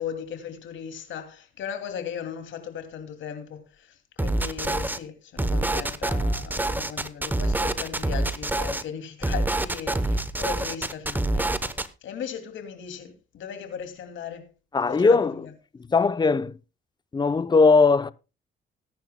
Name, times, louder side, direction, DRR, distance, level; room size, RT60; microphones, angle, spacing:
voice 1, 0.0-14.5 14.9-15.5, left 8 dB, 75° left, 2.6 m, -37 dB
sound 1, 4.2-5.0 5.4-8.8 9.2-11.9, right 2 dB, 10° right, 0.9 m, -26 dB
voice 2, 14.7-15.3 15.9-16.5 17.1-18.1, left 4 dB, 20° left, 0.6 m, -19 dB
20.0 x 10.5 x 2.2 m
cardioid pair, 90°, 20 cm